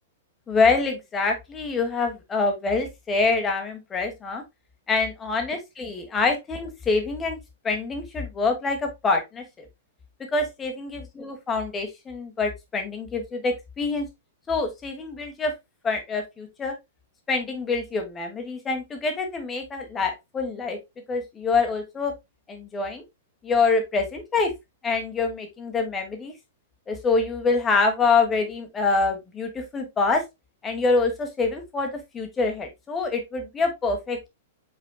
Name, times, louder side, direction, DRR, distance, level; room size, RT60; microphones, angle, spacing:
voice 1, 0.5-4.4 4.9-7.4 7.6-9.7 10.3-14.1 14.5-15.5 15.8-16.7 17.3-20.8 21.1-22.1 22.5-23.0 23.4-24.5 24.8-26.3 26.9-30.2 30.6-34.3, left 4 dB, 20° left, 4 dB, 1.4 m, -25 dB
5.3 x 4.2 x 2.2 m, 0.21 s
hypercardioid pair, 130°, 0 cm